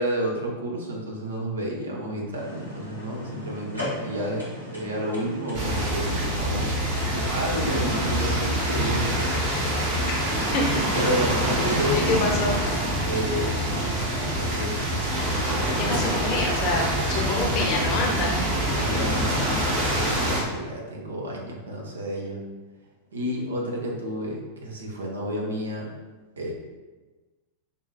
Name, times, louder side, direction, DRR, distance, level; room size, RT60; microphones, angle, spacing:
voice 1, 0.0-6.7 7.3-9.2 9.6-9.7 9.9-10.0 10.9-12.2 13.0-13.6 14.2-14.9 17.5-18.1 18.7-22.4 23.1-25.9 26.4-26.5, equal, 70° right, -1 dB, 0.7 m, -30 dB
sound 1, 2.3-12.6, equal, 85° right, 1.1 m, -39 dB
sound 2, 5.5-20.4, right 1 dB, 50° right, 1.5 m, -25 dB
voice 2, 10.5-11.0 11.9-12.6 15.8-18.5, left 2 dB, 40° left, 0 dB, 0.8 m, -27 dB
5.4 x 2.6 x 2.3 m, 1.3 s
figure-of-eight pair, 90°, 0 cm